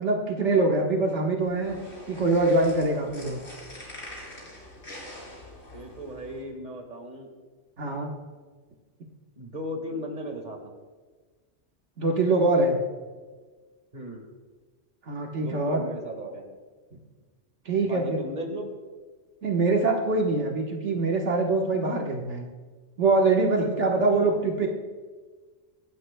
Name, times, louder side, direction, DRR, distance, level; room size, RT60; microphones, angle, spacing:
voice 1, 0.0-1.8 2.1-3.4 7.8-8.2 12.0-12.8 15.1-15.8 17.7-18.2 19.4-22.4 23.0-24.7, right 2 dB, 75° right, 0 dB, 1.6 m, -24 dB
sound 1, 1.4-6.4, left 1 dB, 65° left, 4.6 m, -44 dB
voice 2, 5.7-7.3 9.4-10.7 13.9-14.2 15.4-16.5 17.8-18.7 23.9-24.4, equal, 40° right, 3 dB, 1.9 m, -37 dB
26.0 x 12.0 x 2.2 m, 1.4 s
omnidirectional pair, 1.2 m